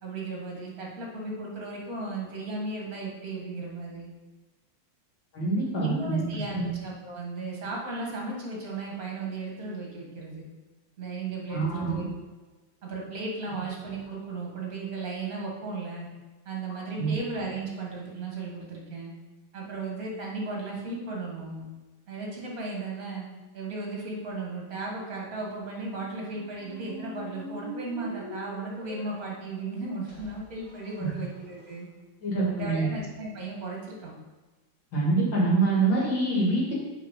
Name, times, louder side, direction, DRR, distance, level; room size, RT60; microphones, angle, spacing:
voice 1, 0.0-4.1 5.8-10.4 11.0-12.0 12.8-16.1 16.5-19.1 19.5-21.7 22.1-23.3 23.5-31.9 32.6-34.1, right 3 dB, 40° right, -2 dB, 2.3 m, -35 dB
voice 2, 5.3-6.2 6.5-6.7 11.5-12.1 17.0-17.1 31.0-31.1 32.2-32.9 34.9-36.7, right 3 dB, 55° left, -6 dB, 3.4 m, -25 dB
sound 1, 25.8-31.7, equal, 35° left, 2.3 m, -44 dB
7.4 x 5.3 x 5.6 m, 1.2 s
omnidirectional pair, 2.4 m